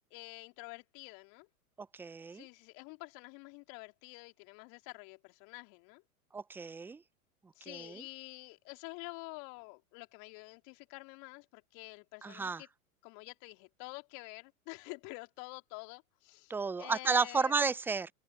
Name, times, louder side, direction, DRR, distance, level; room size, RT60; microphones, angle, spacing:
voice 1, 0.1-1.5 2.3-6.0 7.5-12.7 13.0-17.6, left 32 dB, 45° left, 3.0 m, -48 dB
voice 2, 2.0-2.4 6.3-7.0 7.7-8.0 12.2-12.6 16.5-18.1, right 4 dB, 5° right, 0.4 m, -32 dB
open air
figure-of-eight pair, 100°, 44 cm